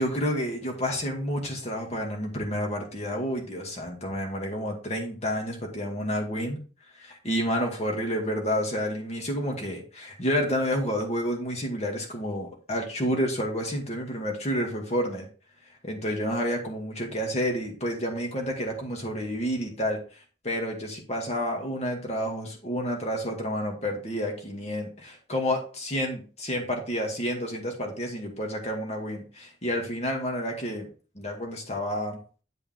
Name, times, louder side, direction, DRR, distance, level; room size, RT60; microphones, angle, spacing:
voice 1, 0.0-6.6 6.9-15.3 15.8-30.9 31.1-32.2, equal, 40° left, 1 dB, 2.3 m, -30 dB
10.5 x 5.3 x 3.8 m, 0.38 s
head